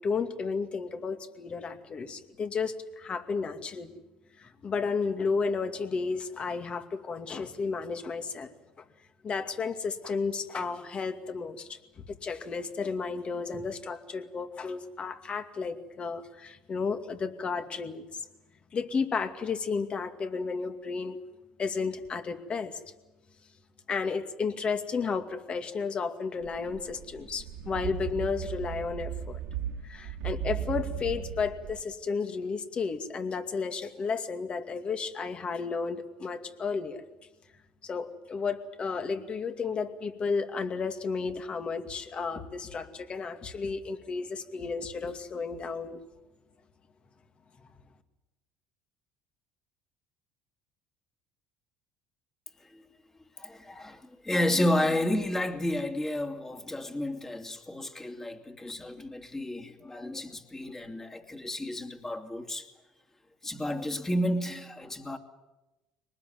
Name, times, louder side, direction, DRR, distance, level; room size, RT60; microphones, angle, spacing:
voice 1, 0.0-4.0 4.4-8.5 9.2-18.2 18.7-21.2 21.6-22.8 23.9-29.4 29.8-37.0 37.8-46.0, left 5 dB, 35° left, 2.4 m, -33 dB
sound 1, 26.4-31.8, right 9 dB, 70° right, 2.6 m, -36 dB
voice 2, 53.4-62.7 63.4-65.2, left 1 dB, 15° left, 2.8 m, -31 dB
23.0 x 20.0 x 9.5 m
hypercardioid pair, 75°, 3 cm